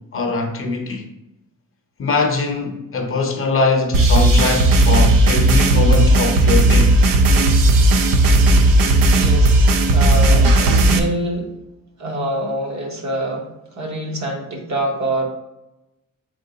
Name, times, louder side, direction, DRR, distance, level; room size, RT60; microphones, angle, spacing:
voice 1, 0.1-1.1 2.0-6.9, left 3 dB, 40° left, 0.7 m, -21 dB
sound 1, 3.9-11.0, right 1 dB, 90° right, 0.6 m, -14 dB
voice 2, 9.1-11.5 12.0-15.2, right 1 dB, 55° right, 1.0 m, -25 dB
3.7 x 3.6 x 3.8 m
cardioid pair, 135°, 32 cm